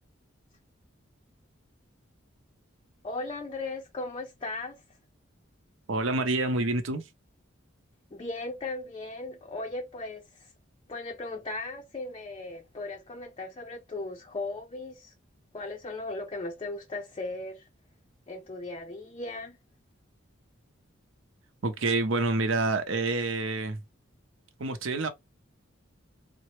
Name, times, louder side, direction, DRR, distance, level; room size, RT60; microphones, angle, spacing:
voice 1, 3.0-4.8 8.1-10.5 10.9-15.1 15.5-17.7 18.3-19.6, left 2 dB, 30° left, 0.4 m, -37 dB
voice 2, 5.9-7.1 21.6-23.8 24.6-25.1, right 2 dB, 85° right, 0.6 m, -27 dB
3.8 x 2.0 x 3.1 m
head